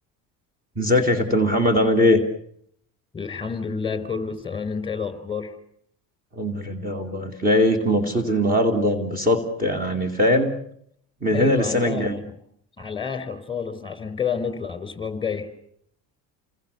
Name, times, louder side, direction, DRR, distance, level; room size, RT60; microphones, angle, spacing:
voice 1, 0.8-2.2 6.3-10.6 11.2-12.2, left 1 dB, 20° right, 4 dB, 3.1 m, -21 dB
voice 2, 3.1-5.5 11.3-12.3 12.8-15.5, left 6 dB, 15° left, 12 dB, 4.6 m, -29 dB
29.5 x 21.5 x 7.0 m, 0.70 s
cardioid pair, 125°, 38 cm